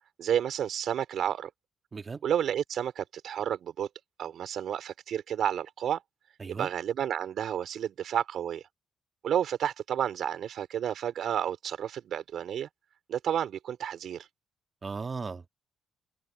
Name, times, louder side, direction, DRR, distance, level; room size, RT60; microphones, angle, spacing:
voice 1, 0.2-1.5 2.2-3.9 4.2-6.0 6.5-8.6 9.2-12.7 13.1-14.3, right 9 dB, 70° right, 3.8 m, -31 dB
voice 2, 1.9-2.2 6.4-6.7 14.8-15.5, right 4 dB, 35° right, 1.8 m, -37 dB
cardioid pair, 90°, 0 cm